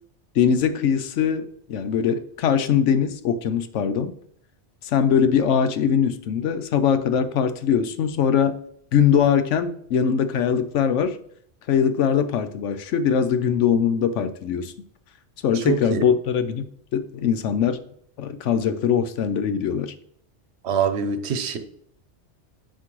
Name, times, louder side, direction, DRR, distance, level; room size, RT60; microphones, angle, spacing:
voice 1, 0.3-4.1 4.8-8.6 8.9-11.2 11.7-14.7 15.4-16.6 16.9-17.8 18.2-19.9, left 7 dB, 90° left, 1.0 m, -21 dB
voice 2, 15.6-16.0 20.6-21.6, right 6 dB, 65° right, 1.0 m, -24 dB
9.5 x 4.5 x 3.1 m
omnidirectional pair, 1.2 m